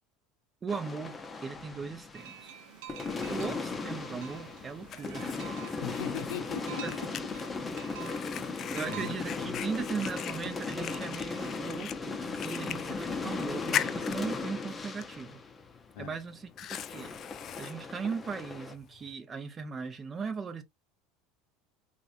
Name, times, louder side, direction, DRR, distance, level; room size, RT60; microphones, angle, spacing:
voice 1, 0.6-1.2 1.4-2.5 3.3-5.4 6.8-7.2 8.3-15.4 16.0-17.1 17.6-20.6, right 5 dB, 30° right, 0.8 m, -38 dB
sound 1, 0.7-2.5 2.9-16.4 16.7-18.7, left 4 dB, 20° left, 0.7 m, -37 dB
sound 2, 2.1-11.6, right 11 dB, 70° right, 0.5 m, -49 dB
Fire, 4.2-19.1, left 10 dB, 45° left, 0.4 m, -42 dB
voice 2, 5.7-7.0 8.1-8.5 8.8-9.6 15.9-16.2, left 8 dB, 70° left, 0.7 m, -40 dB
3.1 x 2.6 x 2.5 m
hypercardioid pair, 80°, 0 cm